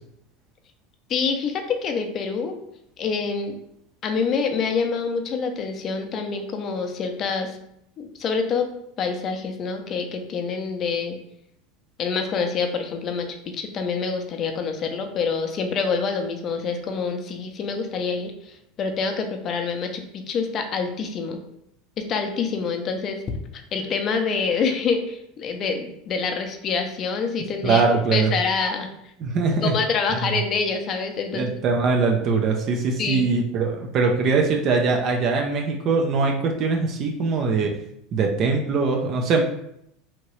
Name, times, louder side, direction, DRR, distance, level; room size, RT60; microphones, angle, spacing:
voice 1, 1.1-2.6 3.0-3.6 4.0-7.6 8.0-8.7 9.0-11.2 12.0-13.3 13.5-21.4 22.0-23.2 23.7-27.8 28.1-28.9 29.6-31.5 33.0-33.3, left 5 dB, 40° left, 5 dB, 0.5 m, -26 dB
voice 2, 27.6-28.3 29.2-29.7 31.3-37.8 38.1-39.4, right 4 dB, 45° right, 2 dB, 0.4 m, -22 dB
2.9 x 2.6 x 3.1 m, 0.76 s
supercardioid pair, 110°, 0 cm